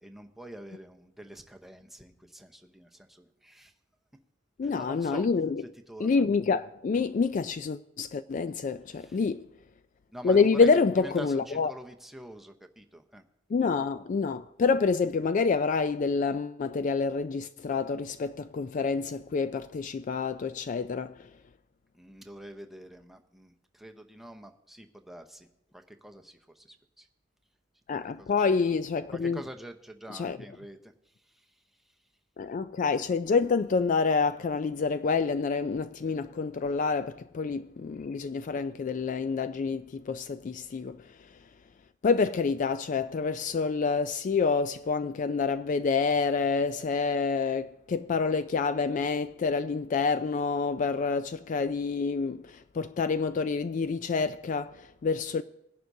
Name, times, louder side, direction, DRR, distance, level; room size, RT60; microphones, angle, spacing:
voice 1, 0.0-3.7 4.6-5.3 5.6-6.2 8.9-9.2 10.1-13.2 13.5-13.7 21.9-27.1 27.9-28.5 29.1-31.9, right 1 dB, ahead, 0.8 m, -46 dB
voice 2, 4.6-5.6 6.0-9.5 10.2-11.7 13.5-21.3 27.9-29.4 30.1-30.4 32.4-41.3 42.0-55.4, left 4 dB, 40° left, 0.3 m, -27 dB
20.0 x 11.0 x 2.7 m
head